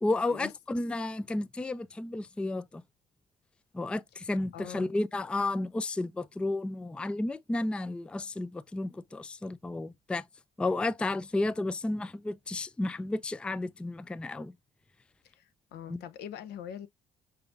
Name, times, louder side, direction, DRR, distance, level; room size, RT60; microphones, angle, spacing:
voice 1, 0.0-2.8 3.7-10.2 10.6-14.5 15.9-16.0, left 2 dB, 5° left, 0.3 m, -32 dB
voice 2, 4.5-4.9 15.2-16.9, left 9 dB, 75° left, 0.7 m, -43 dB
5.7 x 3.5 x 2.5 m
cardioid pair, 110°, 17 cm